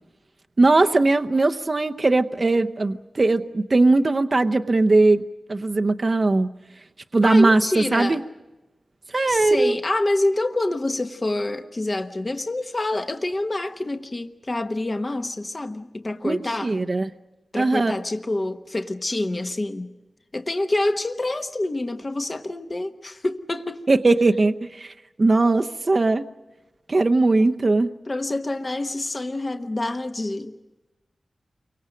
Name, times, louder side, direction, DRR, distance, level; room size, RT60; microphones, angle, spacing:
voice 1, 0.6-5.2 5.5-6.5 7.1-8.2 9.1-9.8 16.2-17.1 17.6-17.9 23.9-24.9 25.2-26.2 26.9-27.9, right 2 dB, 40° right, 0.8 m, -19 dB
voice 2, 7.2-8.2 9.3-16.7 17.5-19.9 20.3-23.9 28.1-30.6, left 2 dB, 35° left, 1.1 m, -27 dB
29.5 x 24.5 x 5.2 m
wide cardioid pair, 105°, 0 cm